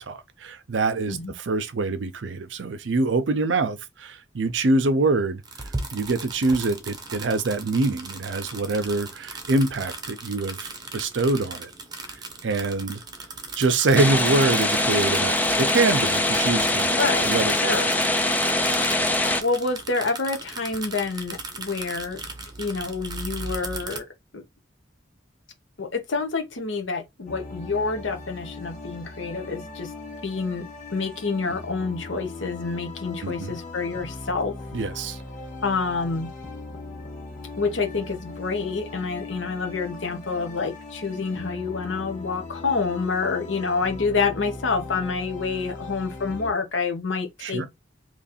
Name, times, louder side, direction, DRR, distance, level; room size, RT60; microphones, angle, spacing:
voice 1, 0.1-5.4 5.9-11.7 12.4-13.0 13.6-16.9 17.2-17.5 33.2-33.5 34.7-35.2 47.4-47.7, right 3 dB, 70° right, 0.6 m, -24 dB
sound 1, 5.4-24.0, right 3 dB, 20° right, 0.7 m, -37 dB
sound 2, 14.0-19.4, left 1 dB, 10° left, 0.3 m, -23 dB
voice 2, 16.9-17.9 19.4-22.2 22.6-24.1 24.3-24.4 25.8-29.9 30.2-34.5 35.6-36.3 37.6-47.7, left 4 dB, 75° left, 0.9 m, -28 dB
sound 3, 27.3-46.5, left 3 dB, 40° left, 1.2 m, -39 dB
3.1 x 2.6 x 4.1 m
head